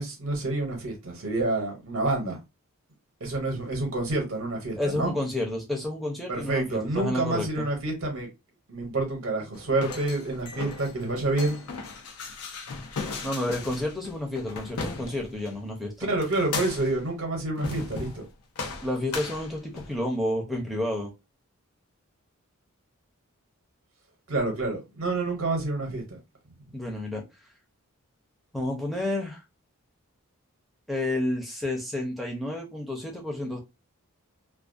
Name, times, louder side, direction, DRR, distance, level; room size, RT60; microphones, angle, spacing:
voice 1, 0.0-2.4 3.2-5.1 6.3-8.3 8.7-11.6 16.1-18.2 24.3-26.2, right 2 dB, 60° right, 0.7 m, -28 dB
voice 2, 4.8-7.7 13.2-16.1 18.8-21.1 26.7-27.2 28.5-29.4 30.9-33.6, left 1 dB, ahead, 0.5 m, -30 dB
sound 1, 9.5-15.5 16.2-17.0 17.6-18.3 18.6-20.0, left 4 dB, 85° left, 0.6 m, -37 dB
2.3 x 2.1 x 2.4 m
head